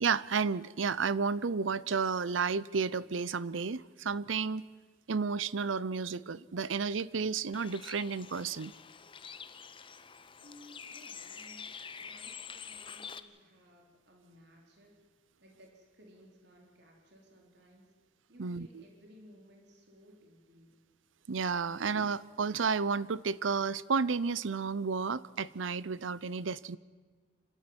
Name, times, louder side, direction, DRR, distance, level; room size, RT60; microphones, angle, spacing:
voice 1, 0.0-4.6 5.1-8.7 18.4-18.7 21.3-26.8, right 5 dB, 85° right, 20 dB, 0.7 m, -32 dB
Bird, 7.5-13.2, left 6 dB, 25° left, 0.8 m, -47 dB
voice 2, 10.4-15.0 15.4-17.9 18.3-20.8, equal, 60° right, 1 dB, 4.0 m, -58 dB
27.5 x 13.0 x 9.7 m, 1.5 s
head